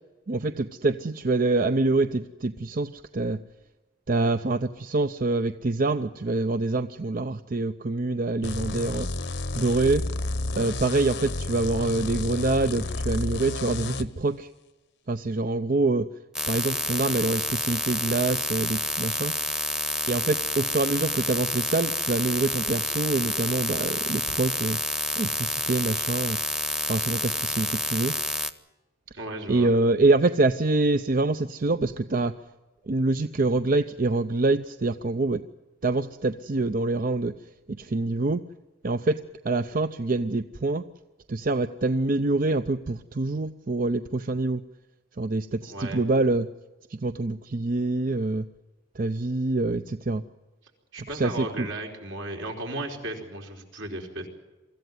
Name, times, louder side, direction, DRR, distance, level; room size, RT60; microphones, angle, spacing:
voice 1, 0.3-3.4 4.1-9.1 9.6-10.1 10.6-14.5 15.1-16.1 16.5-19.3 20.1-24.8 25.2-26.4 26.9-28.2 29.5-32.3 32.9-35.4 35.8-37.3 37.8-38.4 38.8-39.2 39.4-40.8 41.3-44.6 45.2-46.5 46.9-48.4 49.0-50.2 51.0-51.7, right 2 dB, 45° right, 11 dB, 0.6 m, -25 dB
sound 1, 8.4-14.1, left 2 dB, 60° left, 0.9 m, -31 dB
sound 2, 16.3-28.5, equal, 5° right, 0.9 m, -29 dB
voice 2, 29.1-29.7 45.6-46.0 50.9-54.3, right 1 dB, 75° right, 2 dB, 4.5 m, -35 dB
24.0 x 14.5 x 9.4 m, 1.1 s
head